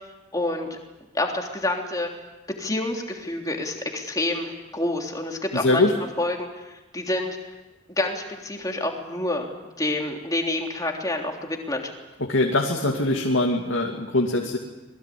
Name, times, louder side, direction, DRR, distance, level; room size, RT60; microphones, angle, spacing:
voice 1, 0.3-0.8 1.1-2.1 2.6-5.9 6.2-7.5 8.0-11.9, left 2 dB, 15° left, 1 dB, 3.3 m, -28 dB
voice 2, 5.5-5.9 12.2-14.6, left 2 dB, 65° left, 0 dB, 2.7 m, -22 dB
27.0 x 21.5 x 8.6 m, 1.1 s
head